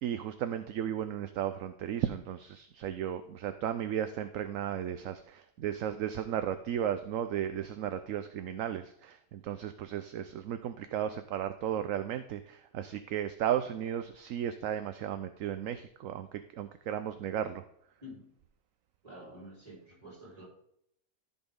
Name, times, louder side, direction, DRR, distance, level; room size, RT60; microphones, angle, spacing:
voice 1, 0.0-17.6, right 10 dB, 70° right, 10 dB, 1.0 m, -35 dB
voice 2, 19.0-20.4, equal, 25° right, -5 dB, 4.4 m, -48 dB
14.0 x 6.1 x 3.7 m, 0.72 s
omnidirectional pair, 1.5 m